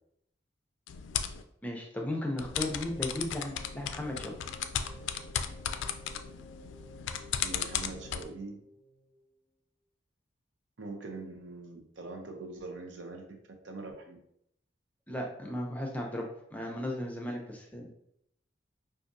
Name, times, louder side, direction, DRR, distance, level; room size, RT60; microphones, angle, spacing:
sound 1, 0.9-1.4 2.4-8.2, left 8 dB, 90° left, 0.3 m, -36 dB
voice 1, 1.6-4.4 15.1-17.9, left 1 dB, 10° left, 0 dB, 0.5 m, -36 dB
sound 2, 2.1-9.3, right 1 dB, 30° right, 0.9 m, -54 dB
voice 2, 7.4-8.6 10.8-13.4 13.6-14.2, right 3 dB, 80° right, 2 dB, 0.7 m, -43 dB
4.7 x 2.5 x 2.6 m, 0.74 s
head